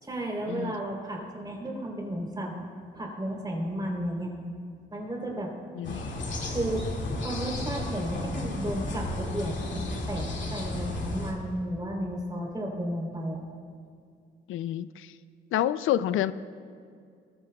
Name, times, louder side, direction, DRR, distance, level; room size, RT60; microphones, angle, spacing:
voice 1, 0.0-2.7 2.9-4.3 4.9-5.5 6.5-6.9 7.2-13.4, right 1 dB, 20° right, -1 dB, 3.5 m, -33 dB
sound 1, 5.8-11.3, left 2 dB, 65° left, 2.3 m, -33 dB
voice 2, 14.5-15.1 15.5-16.3, left 12 dB, 90° left, 14 dB, 0.5 m, -28 dB
22.0 x 14.5 x 2.3 m, 2.3 s
cardioid pair, 100°, 20 cm